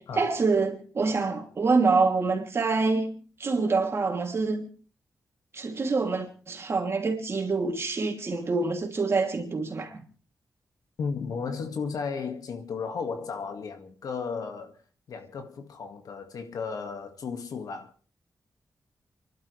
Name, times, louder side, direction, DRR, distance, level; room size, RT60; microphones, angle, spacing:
voice 1, 0.0-3.1 3.4-4.7 5.5-10.0, right 4 dB, 45° right, 3.1 m, -26 dB
voice 2, 11.0-14.8 15.1-17.9, left 5 dB, 90° left, 2.1 m, -34 dB
30.0 x 12.0 x 3.4 m
wide cardioid pair, 135°, 6 cm